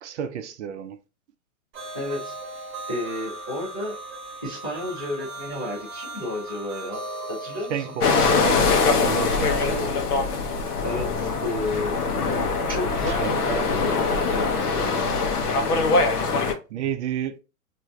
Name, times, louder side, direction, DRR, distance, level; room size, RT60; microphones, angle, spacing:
voice 1, 0.0-1.0 7.7-9.6 12.8-13.7 16.7-17.4, right 8 dB, 55° right, 0.5 m, -32 dB
sound 1, 1.7-8.6, right 2 dB, 25° right, 1.0 m, -38 dB
voice 2, 1.9-2.4 2.9-4.0 4.4-7.0 7.3-8.0 9.6-10.0 10.8-11.9 12.7-14.8, left 1 dB, 20° left, 0.3 m, -32 dB
sound 2, 8.0-16.5, left 4 dB, 90° left, 0.8 m, -23 dB
3.2 x 2.6 x 2.2 m
hypercardioid pair, 145°, 44 cm